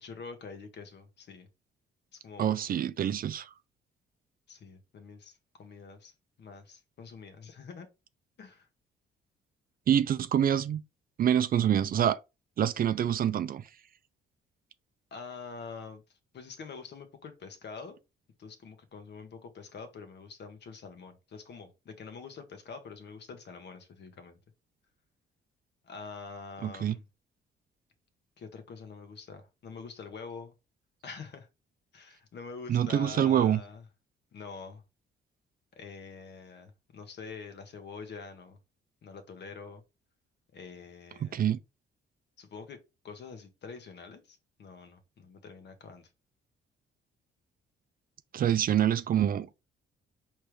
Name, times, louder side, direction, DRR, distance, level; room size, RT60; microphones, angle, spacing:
voice 1, 0.0-1.5 2.1-2.5 4.5-6.1 6.4-7.9 8.4-8.7 15.1-16.0 16.3-18.0 18.4-24.4 25.8-27.0 28.4-30.5 31.0-31.5 31.9-33.8 34.3-34.8 35.8-38.6 39.0-39.8 40.5-41.4 42.4-42.8 43.0-46.1, left 5 dB, 60° left, 1.1 m, -45 dB
voice 2, 2.4-3.5 9.9-10.8 11.2-12.2 12.6-13.6 26.6-27.0 32.7-33.6 41.2-41.6 48.3-49.5, right 10 dB, 45° right, 0.4 m, -26 dB
4.7 x 3.2 x 3.2 m
cardioid pair, 90°, 20 cm